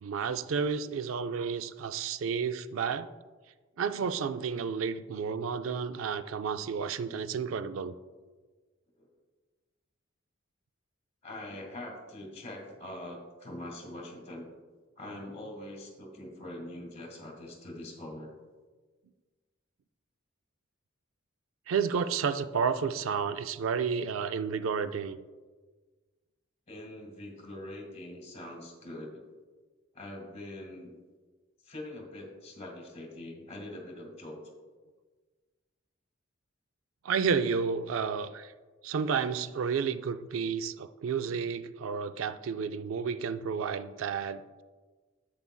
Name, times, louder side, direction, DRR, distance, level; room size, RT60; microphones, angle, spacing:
voice 1, 0.0-3.1 3.8-7.9 21.7-25.2 37.0-38.5 38.8-44.6, right 6 dB, 75° right, 12 dB, 0.4 m, -31 dB
voice 2, 11.2-14.5 15.0-18.3 26.7-29.2 29.9-30.9 31.6-34.4, left 1 dB, 30° left, 1 dB, 1.9 m, -43 dB
10.5 x 8.3 x 2.3 m, 1.3 s
head